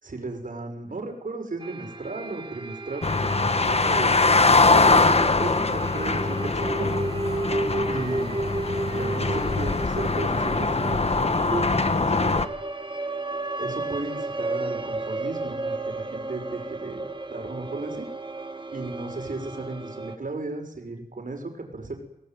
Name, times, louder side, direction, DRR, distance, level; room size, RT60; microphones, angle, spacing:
voice 1, 0.0-6.9 7.9-8.4 9.0-12.4 13.6-18.1 18.7-22.0, right 3 dB, 55° right, 4 dB, 6.6 m, -35 dB
sound 1, 1.6-20.2, right 2 dB, 30° right, 2.0 m, -33 dB
sound 2, 3.0-12.5, left 3 dB, 40° left, 1.5 m, -22 dB
27.5 x 19.5 x 9.6 m, 0.84 s
wide cardioid pair, 85°, 17 cm